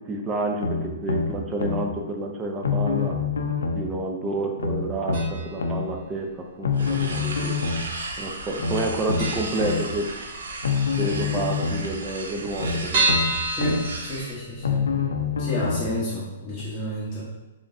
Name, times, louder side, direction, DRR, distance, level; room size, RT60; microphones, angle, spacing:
voice 1, 0.1-3.3 3.7-7.6 8.2-10.1 11.0-13.2, right 2 dB, 20° right, 1 dB, 0.6 m, -29 dB
sound 1, 0.6-1.9 2.6-3.9 4.6-5.9 6.6-7.9 8.6-9.9 10.6-11.9 12.6-13.9 14.6-15.9 16.6-16.7, left 5 dB, 85° left, 0.4 m, -26 dB
sound 2, 5.1-5.7 5.9-6.0 7.0-7.7 7.9-8.1 8.4-8.5 8.8-8.9 9.2-10.5 10.9-11.0 11.2-11.3 11.5-11.6 12.1-14.8 15.2-15.3 15.7-15.8, right 2 dB, 50° right, 1.4 m, -28 dB
sound 3, 6.7-14.4, right 2 dB, 80° right, 0.6 m, -36 dB
voice 2, 13.5-14.9 15.4-17.3, left 1 dB, 15° left, -12 dB, 1.2 m, -30 dB
3.7 x 3.5 x 2.6 m, 1.1 s
hypercardioid pair, 135°, 0 cm